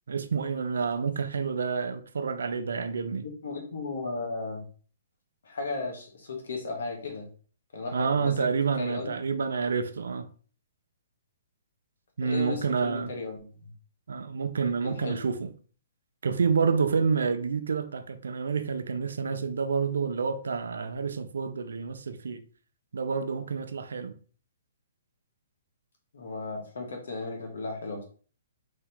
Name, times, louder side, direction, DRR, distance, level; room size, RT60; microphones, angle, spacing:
voice 1, 0.1-3.2 7.9-10.3 12.2-13.1 14.1-15.5 16.2-22.4 22.9-24.1, right 5 dB, 80° right, 0.5 m, -28 dB
voice 2, 3.2-4.7 5.4-7.3 7.7-8.4 8.8-9.1 12.2-13.7 14.8-15.2 26.1-28.0, left 3 dB, 75° left, 1.5 m, -35 dB
3.6 x 2.8 x 3.5 m
hypercardioid pair, 140°, 0 cm